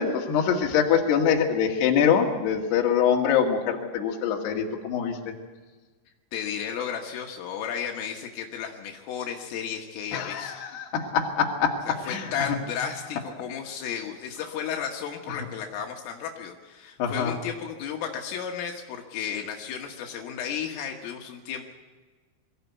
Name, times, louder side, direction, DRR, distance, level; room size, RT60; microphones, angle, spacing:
voice 1, 0.0-5.3 10.1-11.8 12.1-12.3 17.0-17.4, left 7 dB, 60° left, 1 dB, 3.7 m, -24 dB
voice 2, 6.3-10.5 11.9-21.6, left 8 dB, 75° left, 2 dB, 4.0 m, -33 dB
22.5 x 15.5 x 8.2 m, 1.3 s
omnidirectional pair, 5.9 m